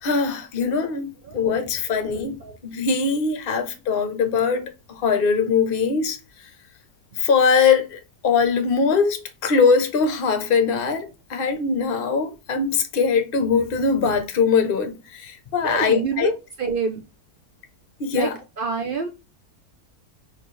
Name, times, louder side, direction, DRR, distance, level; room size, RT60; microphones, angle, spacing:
voice 1, 0.0-6.2 7.2-16.3 18.0-18.3, left 5 dB, 45° left, 0.8 m, -22 dB
voice 2, 1.2-1.6 2.0-2.6 15.6-17.0 18.1-18.3 18.6-19.1, right 5 dB, 65° right, 0.5 m, -28 dB
4.2 x 3.3 x 3.2 m
omnidirectional pair, 1.6 m